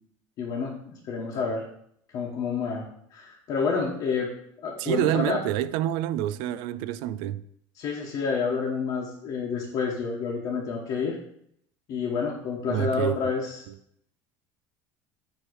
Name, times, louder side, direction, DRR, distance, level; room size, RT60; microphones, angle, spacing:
voice 1, 0.4-1.6 2.1-4.3 4.6-5.4 7.7-11.2 11.9-13.6, left 5 dB, 45° left, 1.2 m, -29 dB
voice 2, 4.8-7.4 12.7-13.2, right 12 dB, 65° right, 0.4 m, -27 dB
7.8 x 3.1 x 6.2 m
cardioid pair, 165°, 9 cm